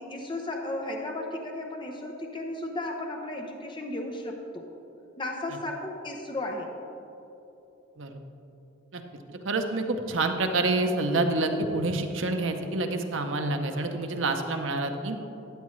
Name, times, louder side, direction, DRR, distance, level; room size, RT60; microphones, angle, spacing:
voice 1, 0.0-4.7 5.2-6.7, left 1 dB, 25° left, 1 dB, 0.7 m, -34 dB
voice 2, 9.3-15.2, right 2 dB, 75° right, 5 dB, 0.8 m, -27 dB
12.5 x 8.6 x 3.2 m, 3.0 s
head